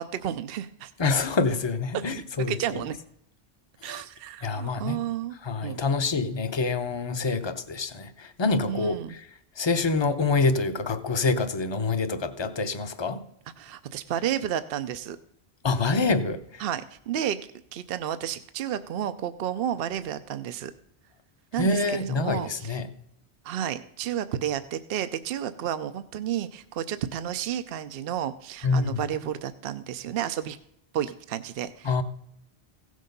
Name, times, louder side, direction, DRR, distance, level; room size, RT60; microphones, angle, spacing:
voice 1, 0.0-0.9 2.1-2.9 3.8-5.3 5.6-5.8 8.7-9.2 13.6-15.2 16.6-17.4 17.7-20.7 21.5-22.8 23.4-30.6 30.9-32.0, right 10 dB, 70° right, 0.8 m, -31 dB
voice 2, 1.0-2.6 3.9-4.0 4.4-5.0 5.4-9.2 9.6-13.2 15.6-16.6 21.6-22.9 28.6-29.1 31.8-32.0, left 3 dB, 30° left, 0.7 m, -26 dB
16.0 x 6.4 x 5.3 m
omnidirectional pair, 1.0 m